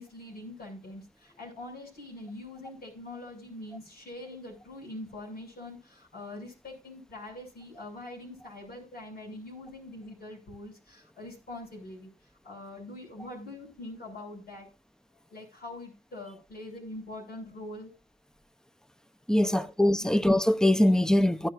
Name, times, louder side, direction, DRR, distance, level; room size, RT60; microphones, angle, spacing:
voice 1, 0.0-12.1 12.4-14.7 15.3-17.9 19.4-19.7 20.0-20.1, left 1 dB, 90° left, 6.6 m, -43 dB
voice 2, 19.3-21.5, left 1 dB, 5° left, 0.8 m, -22 dB
15.5 x 11.0 x 2.6 m
cardioid pair, 65°, 16 cm